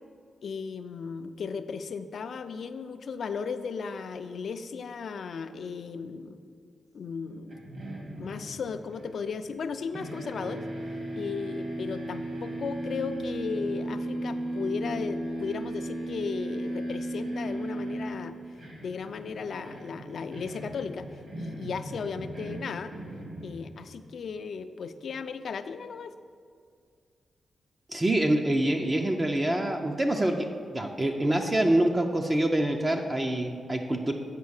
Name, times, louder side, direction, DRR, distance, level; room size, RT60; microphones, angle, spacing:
voice 1, 0.4-6.4 6.9-7.6 8.2-10.6 11.1-18.3 18.8-21.1 21.4-22.9 23.4-26.1, left 5 dB, 65° left, 10 dB, 0.4 m, -36 dB
sound 1, 7.5-9.7 9.9-23.9, right 1 dB, 55° right, 2.1 m, -36 dB
voice 2, 27.9-30.5 30.7-34.1, right 1 dB, 20° right, 3 dB, 0.5 m, -26 dB
8.2 x 5.1 x 6.4 m, 2.2 s
wide cardioid pair, 115°, 0 cm